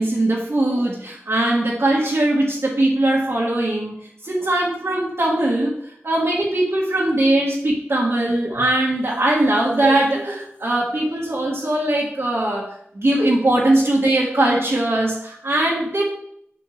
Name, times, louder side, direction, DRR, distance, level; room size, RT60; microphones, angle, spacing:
voice 1, 0.0-3.9 4.2-5.7 6.0-12.6 12.9-16.1, right 1 dB, 65° right, -6 dB, 1.7 m, -20 dB
8.0 x 5.7 x 3.3 m, 0.71 s
wide cardioid pair, 50°, 5 cm